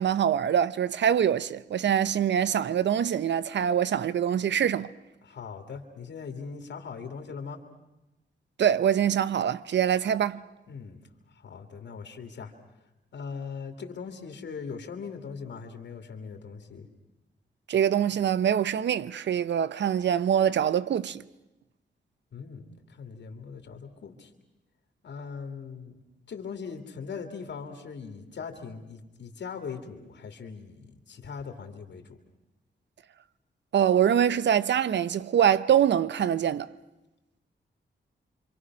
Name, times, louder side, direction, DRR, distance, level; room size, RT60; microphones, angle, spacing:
voice 1, 0.0-4.9 8.6-10.4 17.7-21.2 33.7-36.7, right 9 dB, 75° right, 0.8 m, -24 dB
voice 2, 5.2-7.6 10.7-11.0 11.3-12.5 13.1-16.9 22.3-24.3 25.0-26.0 26.3-32.2, left 5 dB, 75° left, 2.6 m, -40 dB
27.0 x 25.5 x 6.2 m
wide cardioid pair, 145°, 19 cm